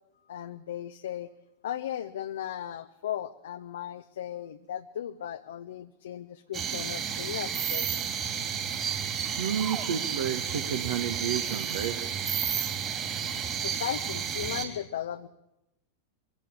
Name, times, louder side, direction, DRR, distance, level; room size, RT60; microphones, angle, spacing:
voice 1, 0.3-1.3 1.6-8.1 13.6-15.3, left 10 dB, 60° left, 8 dB, 0.7 m, -36 dB
sound 1, 6.5-14.6, right 8 dB, 30° right, 3.3 m, -31 dB
voice 2, 9.4-12.1, right 8 dB, 60° right, 6 dB, 1.4 m, -31 dB
23.5 x 16.0 x 8.7 m, 0.90 s
figure-of-eight pair, 90°, 0 cm